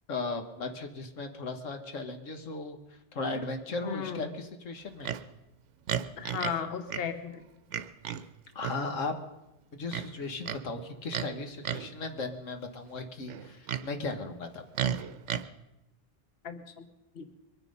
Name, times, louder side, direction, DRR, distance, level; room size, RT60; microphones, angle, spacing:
voice 1, 0.1-5.1 8.5-9.2 9.7-14.6, left 3 dB, 80° left, 6 dB, 1.7 m, -36 dB
voice 2, 3.8-4.2 6.2-7.5 16.4-16.8 17.1-17.3, left 7 dB, 55° left, 8 dB, 1.2 m, -35 dB
Livestock farm animals working animals, 5.0-5.2 5.9-6.6 6.9-7.1 7.7-8.2 8.6-8.8 9.9-10.6 11.1-11.3 11.6-11.9 13.3-13.9 14.7-15.4, right 9 dB, 75° right, 1.0 m, -33 dB
23.0 x 10.0 x 5.4 m, 0.94 s
omnidirectional pair, 1.3 m